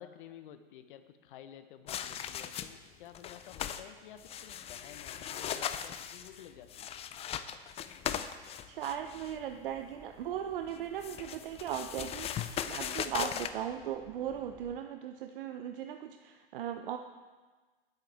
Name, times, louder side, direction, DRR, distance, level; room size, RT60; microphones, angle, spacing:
voice 1, 0.0-6.9, left 10 dB, 60° left, 10 dB, 1.1 m, -52 dB
sound 1, 1.9-2.9 3.1-3.8 4.2-9.4 10.7-13.5, left 9 dB, 20° left, 0.5 m, -38 dB
voice 2, 8.7-17.0, right 10 dB, 60° right, 6 dB, 0.7 m, -38 dB
sound 2, 8.9-14.8, right 3 dB, 10° right, 1.0 m, -59 dB
19.0 x 8.2 x 3.5 m, 1.3 s
hypercardioid pair, 105°, 30 cm